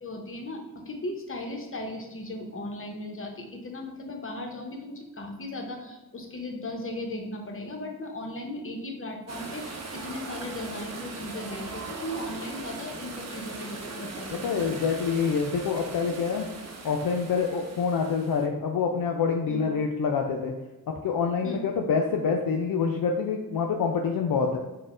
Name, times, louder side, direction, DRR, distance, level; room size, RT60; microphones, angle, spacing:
voice 1, 0.0-14.8 19.5-19.7 21.4-21.6, left 1 dB, 35° left, 2 dB, 0.8 m, -37 dB
sound 1, 9.3-18.5, right 3 dB, 40° right, 0.6 m, -39 dB
voice 2, 14.3-16.5 16.8-20.5 21.0-24.6, left 5 dB, 65° left, 2 dB, 0.5 m, -26 dB
4.1 x 2.2 x 3.7 m, 1.1 s
cardioid pair, 45°, 39 cm